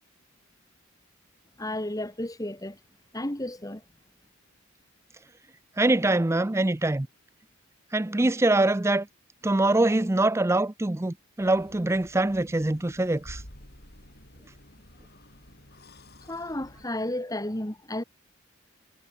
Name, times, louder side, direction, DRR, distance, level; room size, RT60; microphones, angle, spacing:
voice 1, 1.6-2.8 3.1-3.8 16.3-18.0, left 1 dB, 15° left, 2.0 m, -32 dB
voice 2, 5.8-7.1 7.9-9.1 9.4-13.4, right 2 dB, 15° right, 0.5 m, -24 dB
sound 1, 11.4-16.9, left 1 dB, 45° left, 7.7 m, -50 dB
head